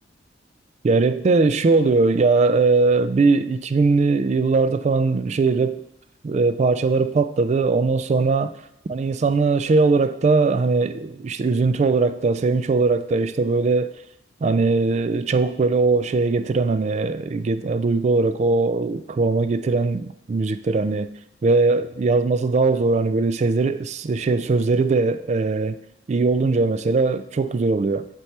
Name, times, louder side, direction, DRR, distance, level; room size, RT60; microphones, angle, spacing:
voice 1, 0.8-5.8 6.2-8.5 8.9-13.9 14.4-21.1 21.4-25.8 26.1-28.1, right 3 dB, 40° right, 0.3 m, -20 dB
9.9 x 4.5 x 3.3 m
head